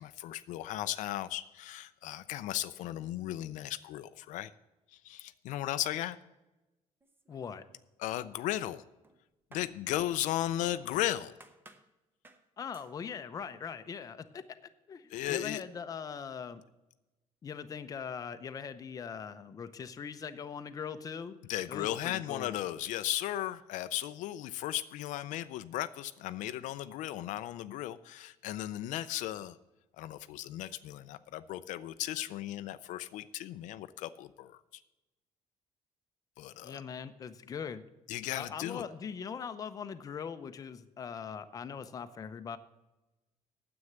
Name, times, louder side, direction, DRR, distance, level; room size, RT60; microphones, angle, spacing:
voice 1, 0.0-4.5 4.9-6.2 8.0-8.8 9.5-11.3 15.1-15.6 21.5-29.6 30.0-34.8 36.4-36.8 38.1-38.8, left 13 dB, 75° left, 12 dB, 0.5 m, -36 dB
sound 1, 7.0-7.8 8.1-10.9 11.4-11.9 12.2-12.5 12.7-13.0, right 2 dB, 15° right, 0.9 m, -59 dB
voice 2, 7.3-7.6 12.6-14.6 14.9-16.6 17.4-21.4 21.7-22.6 36.6-37.8 38.3-42.6, left 6 dB, 25° left, 10 dB, 0.6 m, -41 dB
9.6 x 7.9 x 7.3 m, 1.0 s
cardioid pair, 160°, 13 cm